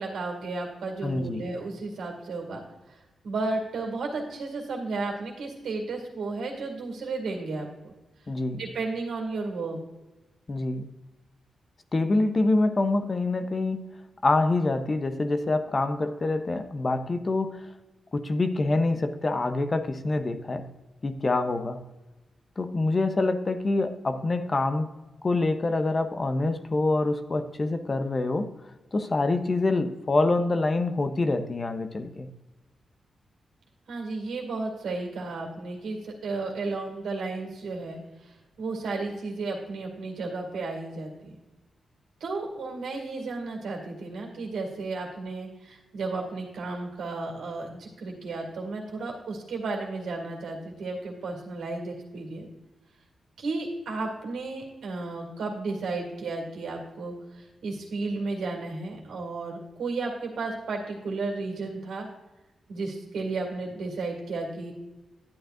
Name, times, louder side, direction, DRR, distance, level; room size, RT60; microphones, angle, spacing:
voice 1, 0.0-3.0 3.2-7.9 8.6-9.8 33.9-41.4 42.2-52.5 53.4-62.1 62.7-64.7, right 3 dB, 85° right, 0 dB, 2.2 m, -33 dB
voice 2, 1.0-1.5 8.3-8.6 10.5-10.9 11.9-13.8 14.2-17.6 18.1-20.7 21.0-21.8 22.6-24.9 25.2-28.5 28.9-32.3, left 2 dB, 40° left, 8 dB, 0.8 m, -26 dB
11.5 x 8.9 x 2.6 m, 1.1 s
cardioid pair, 60°, 0 cm